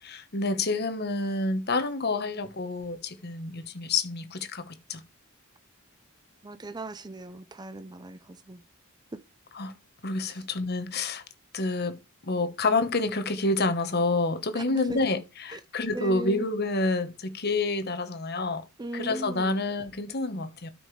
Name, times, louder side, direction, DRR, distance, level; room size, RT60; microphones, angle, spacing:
voice 1, 0.0-5.0 9.5-9.7 10.0-11.2 11.5-12.0 12.3-15.2 15.4-18.6 18.9-20.7, left 3 dB, 50° left, 1.2 m, -28 dB
voice 2, 6.4-8.6 9.1-9.2 14.5-15.1 15.5-15.6 15.9-16.5 18.8-19.6, right 2 dB, 20° right, 0.5 m, -38 dB
12.5 x 5.2 x 3.2 m
head